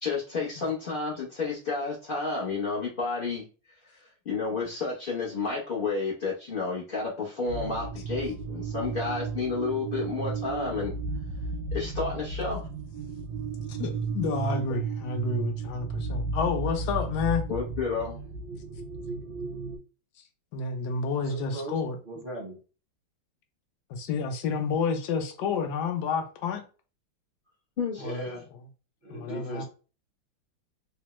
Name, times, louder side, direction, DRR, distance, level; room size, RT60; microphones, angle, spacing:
voice 1, 0.0-3.4 4.0-10.9 11.7-12.6 17.5-18.2 27.8-28.0, left 4 dB, 85° left, 0.4 m, -31 dB
sound 1, 7.5-19.8, right 4 dB, 75° right, 1.0 m, -33 dB
voice 2, 13.7-17.4 20.5-22.0 23.9-26.6 28.0-28.3 29.1-29.6, left 5 dB, 70° left, 1.0 m, -30 dB
voice 3, 21.2-21.8 22.0-22.6 28.0-28.4 29.0-29.6, right 1 dB, 45° right, 0.6 m, -38 dB
3.4 x 2.0 x 3.0 m
omnidirectional pair, 2.2 m